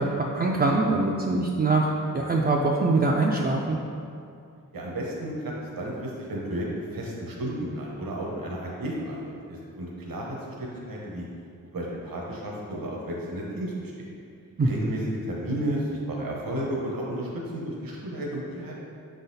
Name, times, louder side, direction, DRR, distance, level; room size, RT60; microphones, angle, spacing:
voice 1, 0.0-1.9 2.1-3.8 14.6-14.7, right 3 dB, 30° right, -2 dB, 0.4 m, -23 dB
voice 2, 4.7-6.6 6.9-11.2 11.7-14.1 14.7-18.7, right 1 dB, 80° right, -3 dB, 1.1 m, -33 dB
7.0 x 4.0 x 4.0 m, 2.5 s
wide cardioid pair, 140°, 34 cm